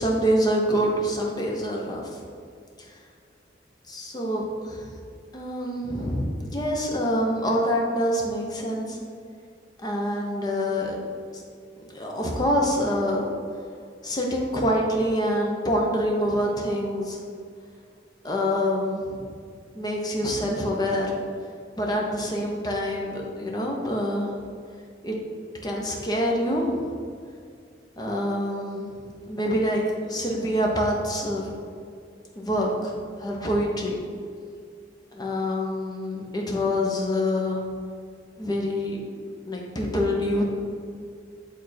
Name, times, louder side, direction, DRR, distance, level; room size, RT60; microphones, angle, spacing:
voice 1, 0.0-2.2 3.9-4.9 5.3-9.0 9.8-11.0 11.3-11.4 11.8-13.2 14.0-17.2 18.2-19.3 19.7-21.2 21.8-24.3 25.0-25.2 25.6-26.9 28.0-28.9 29.3-31.5 32.4-32.9 33.2-34.0 35.1-37.7 38.4-39.0 39.3-40.4, equal, 20° left, -1 dB, 0.9 m, -26 dB
8.7 x 3.6 x 4.3 m, 2.3 s
head